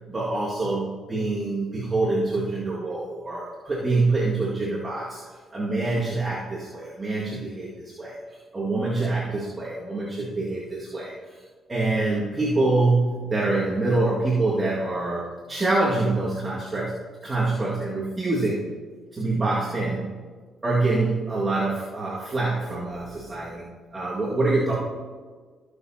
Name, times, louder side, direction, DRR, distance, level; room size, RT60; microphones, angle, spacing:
voice 1, 0.1-5.2 5.5-7.7 8.0-8.2 8.5-11.1 11.7-17.0 17.2-18.6 19.1-20.1 20.6-24.7, right 2 dB, 25° right, -7 dB, 2.1 m, -25 dB
17.5 x 6.8 x 2.9 m, 1.5 s
cardioid pair, 90°, 0 cm